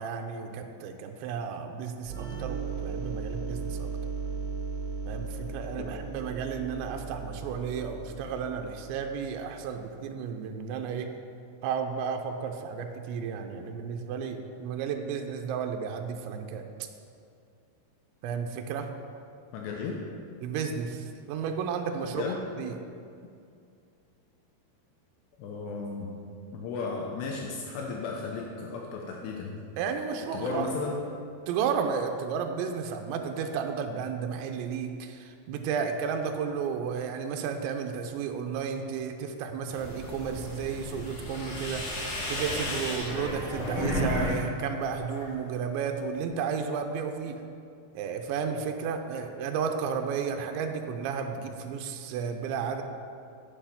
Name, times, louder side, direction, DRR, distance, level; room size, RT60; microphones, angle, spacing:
voice 1, 0.0-3.9 5.1-11.1 11.6-16.6 18.2-18.9 20.4-22.2 22.6-22.7 29.8-30.7 31.5-47.4 47.9-52.8, right 6 dB, 90° right, 5 dB, 2.9 m, -33 dB
sound 1, 2.1-9.6, right 4 dB, 60° right, 3.5 m, -37 dB
voice 2, 19.5-20.0 22.2-22.4 25.4-26.2 26.5-29.6 30.3-31.0, left 4 dB, 80° left, 0 dB, 2.8 m, -34 dB
sound 2, 39.7-44.4 44.7-45.3, left 1 dB, 50° left, 1.6 m, -33 dB
8.0 x 6.9 x 5.7 m, 2.4 s
omnidirectional pair, 5.1 m